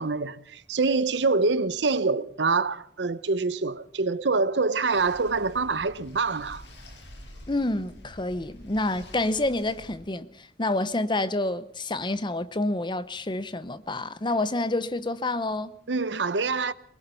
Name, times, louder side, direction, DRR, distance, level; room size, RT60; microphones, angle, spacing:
voice 1, 0.0-6.6 15.9-16.7, right 4 dB, 85° right, 0.8 m, -25 dB
sound 1, 4.9-10.0, left 1 dB, 75° left, 6.7 m, -47 dB
voice 2, 7.5-15.7, left 2 dB, 25° left, 0.9 m, -28 dB
23.5 x 20.5 x 5.5 m
head